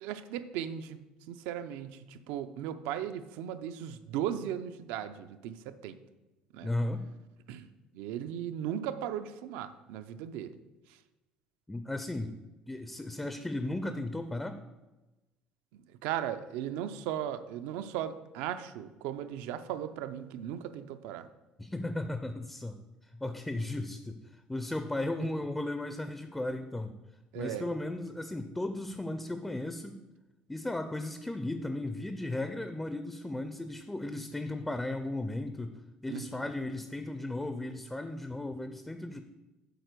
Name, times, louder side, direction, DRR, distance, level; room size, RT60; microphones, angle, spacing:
voice 1, 0.0-6.0 6.5-6.7 7.5-7.7 7.9-10.5 10.9-11.0 15.7-21.3 25.2-25.3 27.3-27.7 36.1-36.5, right 10 dB, 90° right, 11 dB, 0.5 m, -37 dB
voice 2, 6.6-7.0 11.7-12.3 12.7-14.6 21.6-22.8 23.0-24.2 24.5-27.0 27.3-30.0 30.5-35.8 36.0-39.2, left 1 dB, 5° left, 8 dB, 0.4 m, -35 dB
7.8 x 4.5 x 6.6 m, 1.1 s
cardioid pair, 165°, 3 cm